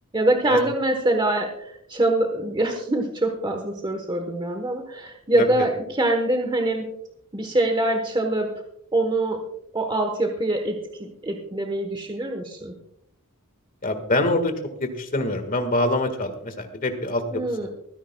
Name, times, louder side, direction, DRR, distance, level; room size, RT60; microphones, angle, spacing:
voice 1, 0.1-6.9 7.3-8.5 8.9-9.4 9.7-12.7 17.3-17.7, right 1 dB, 20° right, 4 dB, 1.1 m, -24 dB
voice 2, 13.8-14.5 14.8-17.7, left 2 dB, 40° left, 7 dB, 1.7 m, -25 dB
24.0 x 10.0 x 2.3 m, 0.76 s
head